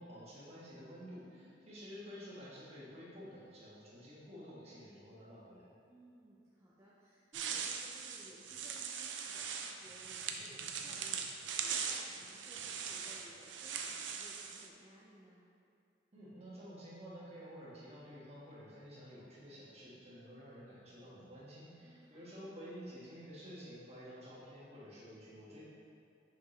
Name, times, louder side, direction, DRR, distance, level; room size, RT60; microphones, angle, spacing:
voice 1, 0.0-5.6 16.1-25.6, equal, 35° right, -8 dB, 1.5 m, -51 dB
voice 2, 5.9-15.4 21.8-22.5, equal, 15° right, -9 dB, 0.6 m, -60 dB
sound 1, 7.3-14.7, right 6 dB, 80° right, 0.5 m, -41 dB
5.8 x 5.1 x 3.2 m, 2.5 s
head